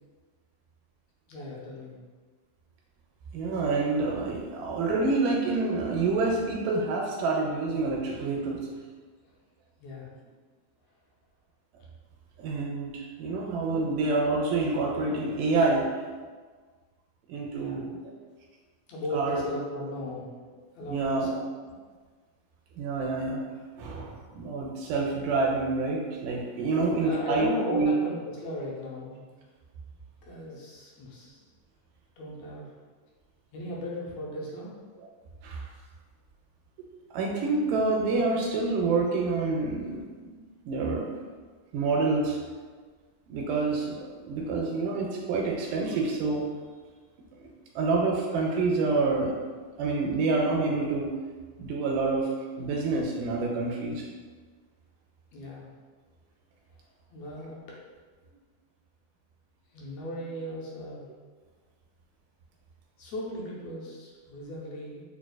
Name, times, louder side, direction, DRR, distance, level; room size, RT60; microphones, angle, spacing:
voice 1, 1.3-2.0 9.8-10.1 13.7-13.9 17.5-17.9 18.9-20.3 20.7-21.3 26.7-29.2 30.2-31.4 32.2-32.7 33.5-34.7 55.3-55.6 57.1-57.6 58.2-58.4 59.7-61.1 63.0-65.0, left 1 dB, 75° left, -4 dB, 1.6 m, -37 dB
voice 2, 3.3-8.6 12.4-15.9 17.3-18.2 19.1-19.5 20.9-21.4 22.8-23.4 23.8-27.9 35.4-35.7 37.1-40.4 40.7-41.1 41.7-42.4 43.3-46.4 47.4-49.3 49.8-51.1 51.6-52.3 52.6-54.1, right 3 dB, 85° right, -1 dB, 2.1 m, -27 dB
6.5 x 2.4 x 2.2 m, 1.5 s
omnidirectional pair, 3.6 m